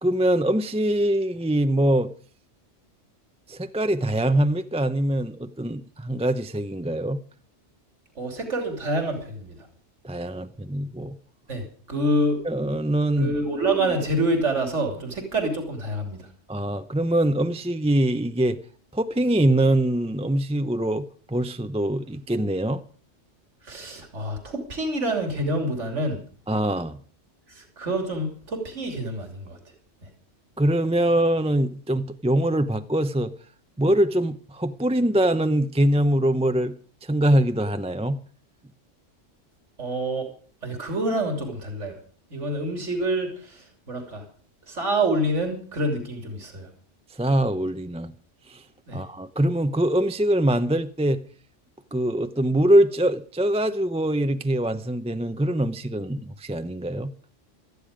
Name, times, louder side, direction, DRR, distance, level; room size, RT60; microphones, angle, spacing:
voice 1, 0.0-2.1 3.5-7.2 10.0-11.2 12.4-13.3 16.5-18.6 18.9-22.8 26.5-27.0 30.6-33.3 33.8-36.7 37.0-38.2 47.1-48.1 48.5-48.6 48.9-51.2 51.9-57.1, right 1 dB, 10° right, 0.4 m, -23 dB
voice 2, 8.2-9.7 11.5-12.4 13.2-16.3 23.6-26.2 27.5-29.6 39.8-40.3 40.6-41.9 42.3-44.2 44.7-46.7 48.9-49.0, right 1 dB, 75° right, 3.3 m, -27 dB
17.5 x 13.5 x 5.1 m
omnidirectional pair, 1.3 m